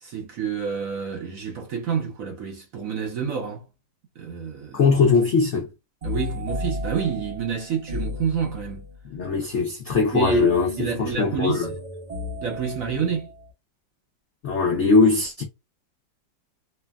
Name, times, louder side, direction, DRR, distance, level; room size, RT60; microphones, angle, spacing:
voice 1, 0.0-3.6 4.2-4.8 6.0-8.9 10.1-11.7 12.4-13.3, right 6 dB, 60° right, 0.9 m, -28 dB
voice 2, 4.7-5.7 9.1-11.7 14.4-15.4, left 4 dB, 70° left, 0.6 m, -20 dB
sound 1, 6.0-9.0 10.2-13.5, left 2 dB, 80° right, 0.3 m, -34 dB
3.3 x 2.1 x 2.2 m
omnidirectional pair, 2.0 m